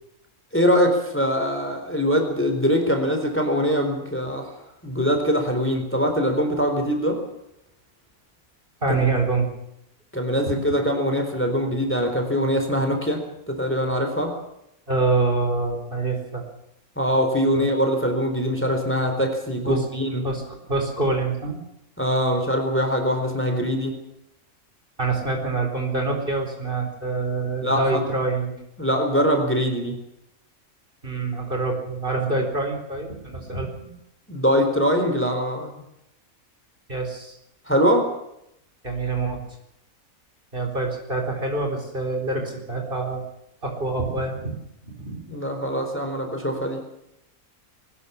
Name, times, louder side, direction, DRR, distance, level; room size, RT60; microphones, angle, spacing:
voice 1, 0.5-4.5 4.8-7.2 10.1-14.3 17.0-20.2 22.0-24.0 27.6-28.1 28.8-30.0 34.3-35.7 37.7-38.1 45.3-46.8, equal, 10° left, 4 dB, 4.0 m, -23 dB
voice 2, 8.8-9.6 10.5-10.6 14.9-16.5 17.5-17.7 19.7-19.8 20.2-21.6 25.0-28.5 31.0-33.9 36.9-37.3 38.8-39.4 40.5-43.2 43.6-44.5 44.8-45.2, right 3 dB, 35° right, 3 dB, 4.5 m, -26 dB
22.0 x 19.5 x 7.2 m, 0.81 s
omnidirectional pair, 1.5 m